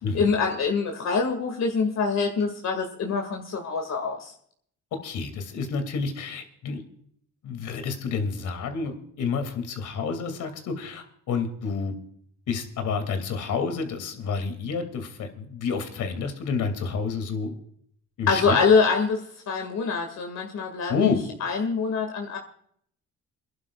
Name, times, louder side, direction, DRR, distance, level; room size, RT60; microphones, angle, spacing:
voice 1, 0.1-4.3 18.3-19.2 19.5-21.1 21.4-22.4, left 5 dB, 60° left, 2 dB, 2.2 m, -24 dB
voice 2, 5.0-6.8 7.4-11.9 12.5-17.5 18.2-18.6 20.9-21.2, left 5 dB, 80° left, 7 dB, 2.7 m, -29 dB
30.0 x 11.5 x 2.4 m, 0.65 s
cardioid pair, 90°, 30 cm